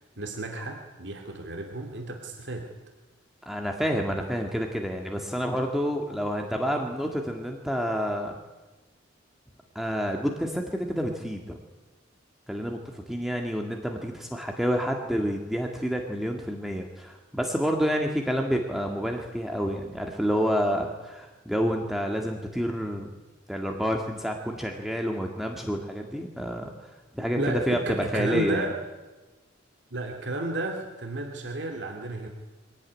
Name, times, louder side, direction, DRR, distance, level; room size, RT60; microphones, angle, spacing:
voice 1, 0.2-2.7 27.2-28.8 29.9-32.3, right 2 dB, 65° right, 2 dB, 2.4 m, -32 dB
voice 2, 3.5-8.4 9.8-11.6 12.5-23.1 23.5-26.7 27.1-27.4 27.7-28.7, equal, ahead, 2 dB, 1.8 m, -29 dB
24.0 x 17.5 x 9.7 m, 1.2 s
head